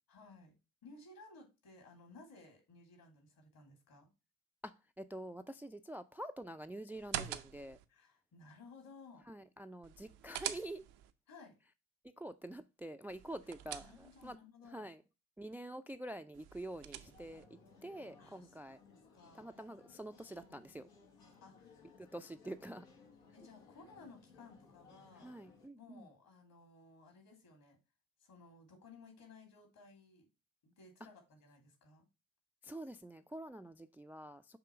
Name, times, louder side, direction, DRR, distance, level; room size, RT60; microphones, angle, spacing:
voice 1, 0.1-4.1 7.9-9.2 11.3-11.6 13.8-14.9 17.8-17.9 18.2-19.5 21.4-22.0 23.3-25.4 25.8-27.8 28.2-30.3 30.6-32.1, left 3 dB, 60° left, 2.8 m, -58 dB
voice 2, 4.6-7.8 9.3-10.8 12.2-14.4 14.7-15.0 15.4-17.5 17.8-18.8 19.3-20.9 22.0-22.9 25.2-26.1 32.6-34.6, right 1 dB, 5° right, 0.4 m, -47 dB
sound 1, 6.9-7.8 9.8-11.1 13.1-14.4 16.3-17.5, right 12 dB, 75° right, 0.6 m, -45 dB
sound 2, 16.9-25.7, left 4 dB, 85° left, 1.3 m, -62 dB
6.9 x 3.0 x 4.7 m
hypercardioid pair, 50°, 39 cm